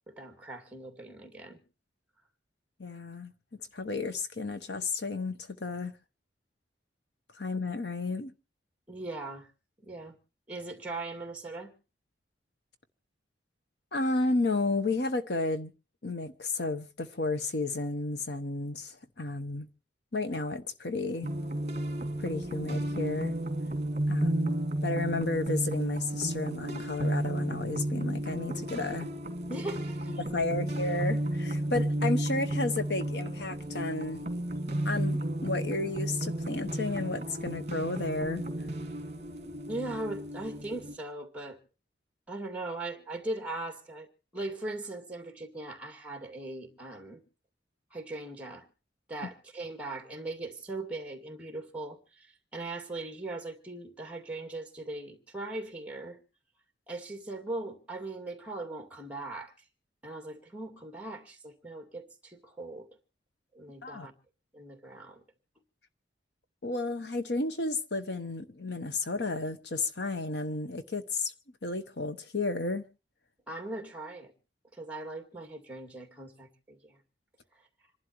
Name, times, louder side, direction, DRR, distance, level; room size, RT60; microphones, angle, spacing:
voice 1, 0.1-1.6 8.9-9.5 9.8-10.2 10.5-11.7 29.5-30.2 39.7-41.6 42.3-47.2 47.9-48.7 49.1-56.2 56.9-59.5 60.0-62.9 63.5-64.1 64.5-65.2 73.5-74.3 74.7-77.0, right 2 dB, 5° right, 2.2 m, -39 dB
voice 2, 2.8-3.3 3.7-5.9 7.3-8.3 13.9-15.7 16.0-19.7 20.1-21.3 22.2-23.3 24.1-29.1 30.2-34.3 34.8-38.4 63.8-64.1 66.6-71.3 71.6-72.8, left 2 dB, 60° left, 1.0 m, -32 dB
sound 1, 21.2-40.9, right 1 dB, 35° right, 2.0 m, -33 dB
27.0 x 11.5 x 3.0 m
head